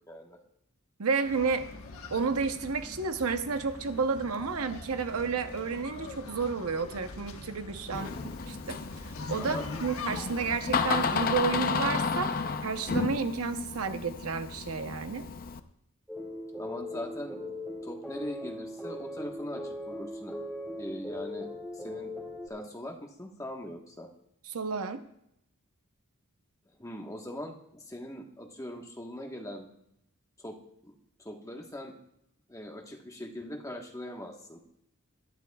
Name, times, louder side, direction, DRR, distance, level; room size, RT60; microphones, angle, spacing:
voice 1, 0.1-0.4 7.9-8.4 9.4-9.7 16.6-20.4 20.8-22.1 22.5-24.1 26.8-29.7 30.4-30.6 30.8-31.9 32.5-34.6, left 1 dB, 15° left, 2 dB, 1.2 m, -41 dB
voice 2, 1.0-1.7 2.1-8.1 8.5-8.8 9.3-12.3 12.6-15.2 24.5-25.0, right 5 dB, 80° right, 8 dB, 0.8 m, -31 dB
sound 1, 1.2-11.3, left 3 dB, 75° left, 1.3 m, -44 dB
Door, 7.9-15.6, left 4 dB, 40° left, 0.6 m, -32 dB
sound 2, 16.1-22.5, left 1 dB, ahead, 2.5 m, -39 dB
22.5 x 11.0 x 2.3 m, 0.77 s
head